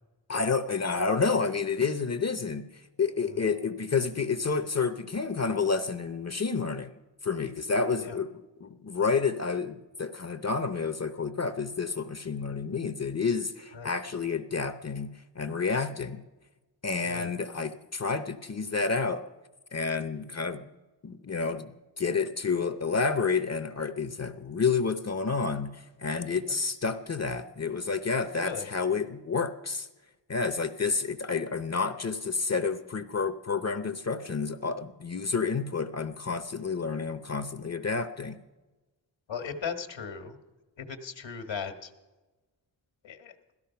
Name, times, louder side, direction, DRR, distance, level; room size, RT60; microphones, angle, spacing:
voice 1, 0.3-2.7 3.0-6.9 7.2-8.3 8.6-16.2 16.8-19.2 19.7-20.6 21.0-29.9 30.3-38.4, left 4 dB, 35° left, 10 dB, 0.7 m, -29 dB
voice 2, 28.4-28.7 39.3-40.4 40.8-41.9 43.0-43.3, left 6 dB, 80° left, 8 dB, 1.6 m, -37 dB
17.0 x 13.5 x 5.7 m, 1.2 s
wide cardioid pair, 160°, 44 cm